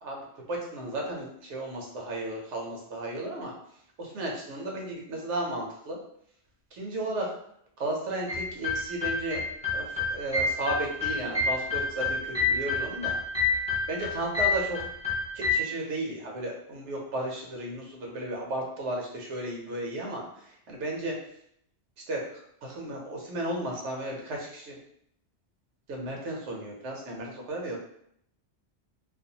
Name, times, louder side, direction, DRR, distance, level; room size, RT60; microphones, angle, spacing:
voice 1, 0.0-3.5 4.0-6.0 6.7-7.3 7.8-9.4 9.7-13.2 13.9-14.9 15.3-21.2 22.1-22.3 22.6-24.8 25.9-27.8, right 1 dB, 90° right, -1 dB, 1.0 m, -34 dB
sound 1, 8.3-15.5, left 4 dB, 10° left, 0.3 m, -29 dB
2.5 x 2.1 x 2.7 m, 0.71 s
omnidirectional pair, 1.2 m